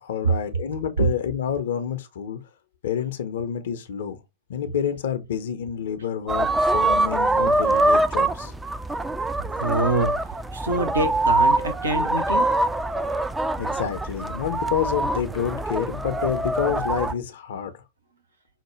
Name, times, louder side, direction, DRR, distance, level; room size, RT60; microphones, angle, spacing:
voice 1, 0.0-2.4 2.8-4.2 4.5-6.5 6.7-8.5 13.6-17.7, left 8 dB, 60° left, 0.5 m, -28 dB
sound 1, 6.3-17.1, right 2 dB, 10° right, 0.3 m, -24 dB
voice 2, 9.6-10.1 10.5-12.5, right 2 dB, 75° right, 0.6 m, -24 dB
5.6 x 2.1 x 3.0 m
figure-of-eight pair, 90°, 0 cm